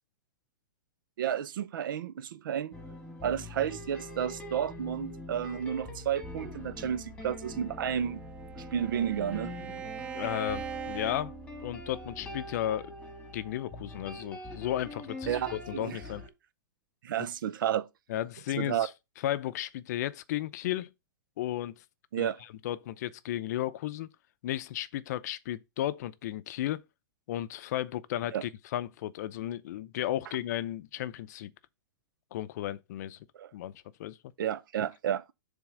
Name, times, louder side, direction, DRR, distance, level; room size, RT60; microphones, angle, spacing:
voice 1, 1.2-2.7 3.2-8.2 8.6-9.5 15.3-16.0 17.0-17.9 18.6-18.9 22.1-22.4 28.3-28.4 33.4-33.5 34.4-35.3, right 9 dB, 75° right, 0.6 m, -31 dB
sound 1, 2.7-16.3, left 1 dB, 10° left, 1.6 m, -43 dB
Bowed string instrument, 7.7-12.1, right 8 dB, 10° right, 0.3 m, -42 dB
voice 2, 10.1-11.3 11.6-12.9 13.3-16.2 18.1-18.9 19.2-20.9 21.4-21.8 22.2-22.3 22.6-24.1 24.4-26.8 27.3-31.5 32.3-33.2 33.5-33.7 34.0-34.2, left 13 dB, 55° left, 0.5 m, -34 dB
7.2 x 3.5 x 4.8 m
hypercardioid pair, 155°, 11 cm